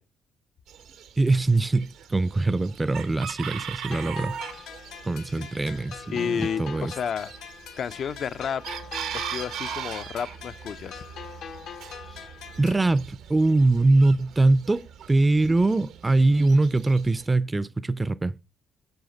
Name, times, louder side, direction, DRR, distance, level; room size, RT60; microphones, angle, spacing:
Chicken rooster, 0.7-17.3, right 8 dB, 85° right, 0.8 m, -40 dB
voice 1, 1.2-4.6 5.0-6.9 12.6-18.3, right 2 dB, 20° right, 0.4 m, -23 dB
sound 1, 3.9-12.9, left 7 dB, 85° left, 0.8 m, -42 dB
voice 2, 6.1-7.3 7.8-8.6 9.1-11.0, left 7 dB, 60° left, 0.3 m, -31 dB
7.9 x 6.4 x 3.9 m
cardioid pair, 90°, 0 cm